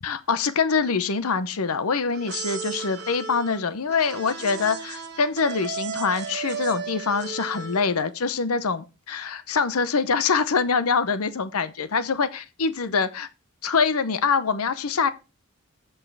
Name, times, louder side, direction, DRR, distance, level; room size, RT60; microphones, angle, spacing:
voice 1, 0.0-13.3 13.6-15.1, left 5 dB, 85° left, 0.8 m, -24 dB
sound 1, 2.1-8.0, right 6 dB, 50° right, 1.4 m, -34 dB
7.9 x 6.4 x 4.7 m
head